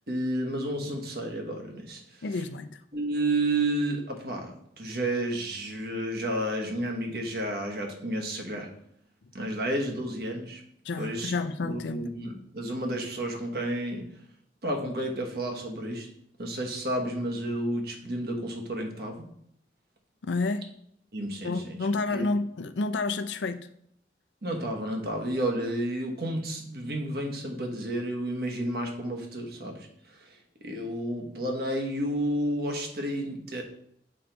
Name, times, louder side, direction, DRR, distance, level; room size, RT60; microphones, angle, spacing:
voice 1, 0.1-2.2 2.9-8.7 9.3-10.6 11.0-11.3 11.6-14.0 14.6-16.1 16.4-19.3 21.1-21.8 22.1-22.3 24.4-33.6, right 1 dB, 60° right, 1.1 m, -31 dB
voice 2, 2.2-2.8 10.8-12.0 20.2-20.7 21.4-23.7, left 3 dB, 90° left, 0.5 m, -30 dB
6.5 x 3.9 x 4.5 m
head